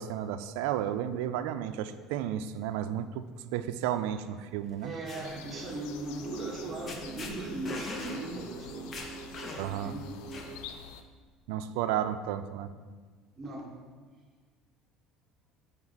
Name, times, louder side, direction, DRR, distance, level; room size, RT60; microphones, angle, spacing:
voice 1, 0.0-3.2 3.5-4.9 9.6-9.9 11.5-12.7, right 10 dB, 85° right, 10 dB, 0.3 m, -32 dB
sound 1, 4.7-5.3 6.5-6.6 6.9-7.3 7.7-8.2 8.6-8.7 8.9-9.8 10.3-10.8, left 3 dB, 35° left, 1.0 m, -40 dB
voice 2, 4.8-8.9 9.6-10.3 13.4-13.8, right 2 dB, 25° right, -2 dB, 1.4 m, -39 dB
sound 2, 5.2-11.0, left 8 dB, 80° left, 0.4 m, -48 dB
sound 3, 5.5-10.7, right 5 dB, 65° right, 0.7 m, -45 dB
7.1 x 5.3 x 4.0 m, 1.5 s
cardioid pair, 120°, 0 cm